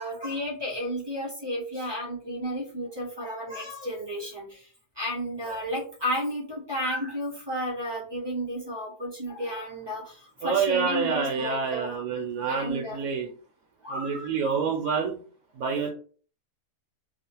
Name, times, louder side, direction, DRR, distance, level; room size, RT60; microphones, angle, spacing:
voice 1, 0.0-4.7 5.0-13.0 13.8-14.3, equal, 35° right, -3 dB, 0.4 m, -33 dB
voice 2, 10.4-13.3 13.9-15.2 15.6-15.9, right 5 dB, 70° right, 1 dB, 1.0 m, -27 dB
3.0 x 2.1 x 2.8 m, 0.42 s
omnidirectional pair, 1.7 m